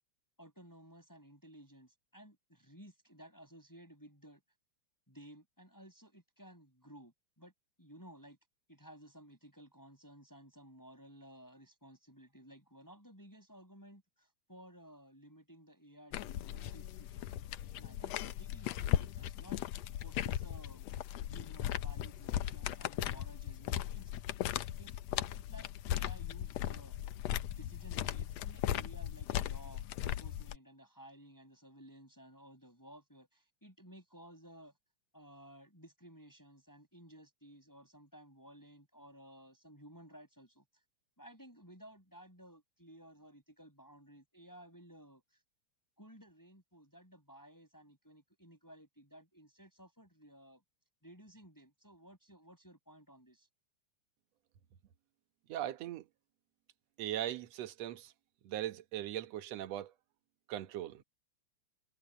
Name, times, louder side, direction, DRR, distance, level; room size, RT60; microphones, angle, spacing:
voice 1, 0.4-4.4 5.1-7.5 7.8-8.4 8.7-17.2 17.8-19.6 20.0-20.8 21.3-24.1 24.8-27.0 27.5-34.7 35.1-40.6 41.2-45.2 46.0-50.6 51.0-53.5, equal, 5° left, 7.1 m, -56 dB
sound 1, 16.1-30.6, left 12 dB, 70° left, 1.8 m, -37 dB
voice 2, 55.5-56.1 57.0-58.1 58.4-59.9 60.5-61.0, right 12 dB, 65° right, 2.2 m, -39 dB
omnidirectional pair, 3.3 m